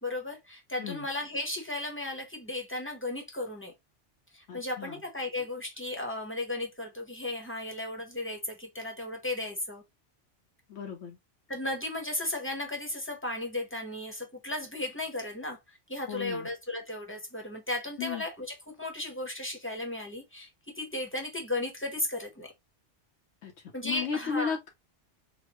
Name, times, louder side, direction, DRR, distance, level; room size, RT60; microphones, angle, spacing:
voice 1, 0.0-3.7 4.3-9.8 11.5-22.5 23.7-24.6, left 2 dB, 10° left, 0.8 m, -35 dB
voice 2, 4.5-5.0 10.7-11.2 16.1-16.5 18.0-18.2 23.4-23.5 23.8-24.7, left 7 dB, 85° left, 1.1 m, -35 dB
4.0 x 2.1 x 2.9 m
omnidirectional pair, 1.2 m